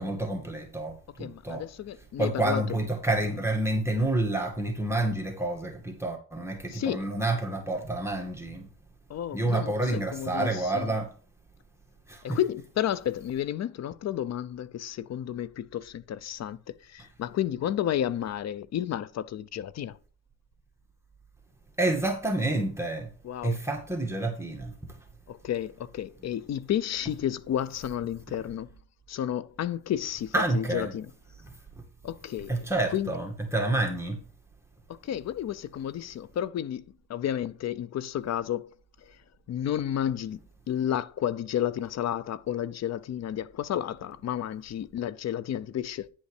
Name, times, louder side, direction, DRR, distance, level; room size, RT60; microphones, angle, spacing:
voice 1, 0.0-1.6 2.2-8.7 9.3-11.1 12.1-12.4 21.8-23.1 23.4-24.7 30.3-30.9 32.5-34.2, right 2 dB, 10° right, 2.0 m, -28 dB
voice 2, 1.2-2.8 6.7-7.1 9.1-11.0 12.2-20.0 23.2-23.6 25.3-28.7 29.1-31.1 32.0-32.7 32.9-33.1 34.9-36.8 37.1-38.7 39.0-39.2 39.5-40.4 40.7-46.1, left 10 dB, 60° left, 0.7 m, -31 dB
10.0 x 5.3 x 4.9 m
cardioid pair, 90°, 30 cm